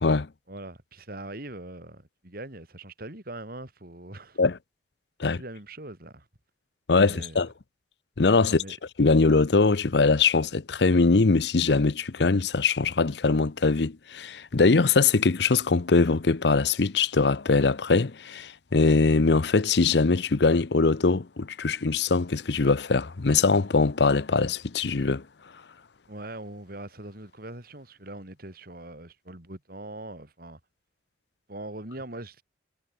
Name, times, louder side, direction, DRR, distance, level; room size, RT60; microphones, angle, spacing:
voice 1, 0.5-4.4 5.2-6.3 7.0-7.4 8.5-8.7 26.1-30.6 31.5-32.4, right 2 dB, 55° right, 3.4 m, -41 dB
voice 2, 6.9-7.5 8.2-8.6 9.0-25.2, left 4 dB, 65° left, 0.7 m, -22 dB
head